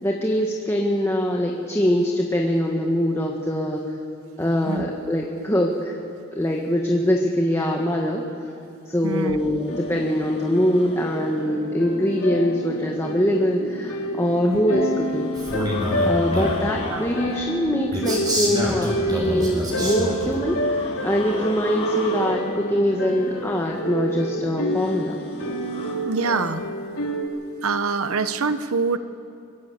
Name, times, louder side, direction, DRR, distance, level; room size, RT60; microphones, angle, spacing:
voice 1, 0.0-3.8 4.4-6.0 6.3-8.2 8.9-15.3 16.0-25.1, equal, 10° left, 0 dB, 1.6 m, -23 dB
voice 2, 9.0-9.4 14.5-14.6 16.9-17.0 26.1-26.7 27.6-29.0, right 4 dB, 80° right, 11 dB, 0.9 m, -24 dB
sound 1, 9.4-25.9, left 1 dB, 30° left, 4.6 m, -38 dB
sound 2, 9.7-27.2, equal, 75° left, 3.4 m, -29 dB
Male speech man speaking, 15.4-16.7 17.9-20.4, equal, 20° right, 6.0 m, -26 dB
25.5 x 22.5 x 8.0 m, 2.5 s
head